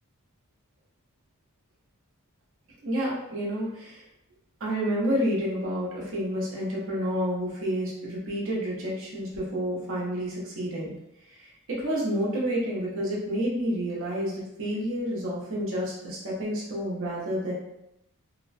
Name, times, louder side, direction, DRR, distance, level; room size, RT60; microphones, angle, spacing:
voice 1, 2.8-4.0 4.6-10.9 11.3-11.4 11.7-17.5, equal, 60° right, -4 dB, 0.8 m, -29 dB
2.8 x 2.1 x 2.5 m, 0.86 s
head